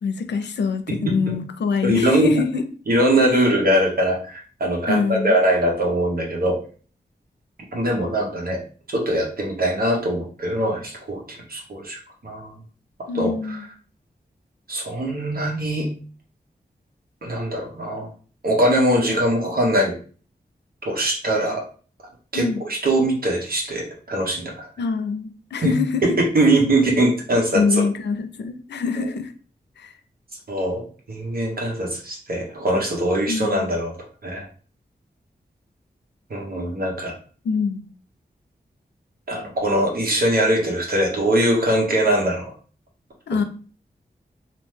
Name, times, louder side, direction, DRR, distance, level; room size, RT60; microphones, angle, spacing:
voice 1, 0.0-2.6 4.9-5.4 13.1-13.6 22.3-22.6 24.8-26.0 27.5-29.3 29.8-29.9 33.2-33.7 37.4-37.9 43.3-43.4, left 5 dB, 85° left, 0.4 m, -24 dB
voice 2, 0.9-1.3 1.8-2.3 2.9-6.6 7.7-8.6 8.9-12.0 12.2-12.5 13.0-13.6 14.7-15.9 17.2-18.1 18.4-19.9 20.8-21.6 22.3-24.7 25.6-25.7 26.0-27.8 30.5-33.9 34.2-34.4 36.3-37.1 39.3-42.5, right 1 dB, 60° right, 1.0 m, -22 dB
2.8 x 2.1 x 3.2 m
wide cardioid pair, 75°, 17 cm